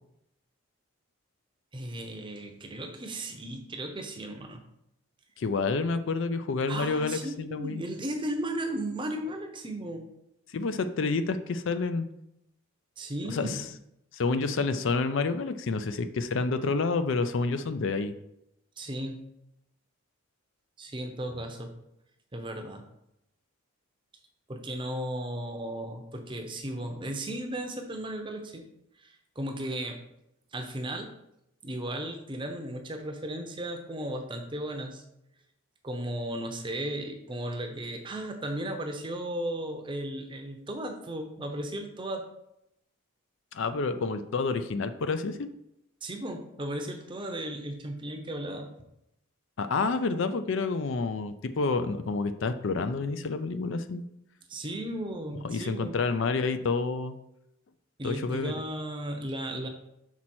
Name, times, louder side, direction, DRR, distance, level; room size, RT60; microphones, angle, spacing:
voice 1, 1.7-4.6 6.7-10.1 13.0-13.6 18.8-19.2 20.8-21.7 22.3-22.9 24.5-28.7 29.0-30.0 30.5-31.1 31.6-35.0 35.8-42.2 46.0-48.7 54.5-56.0 58.0-59.7, right 1 dB, 20° right, 4 dB, 0.7 m, -35 dB
voice 2, 5.4-7.8 10.5-12.1 13.3-13.6 14.1-18.1 43.5-45.5 49.6-54.0 55.4-57.1 58.0-58.5, left 4 dB, 60° left, 10 dB, 0.4 m, -29 dB
6.1 x 4.2 x 4.3 m, 0.80 s
head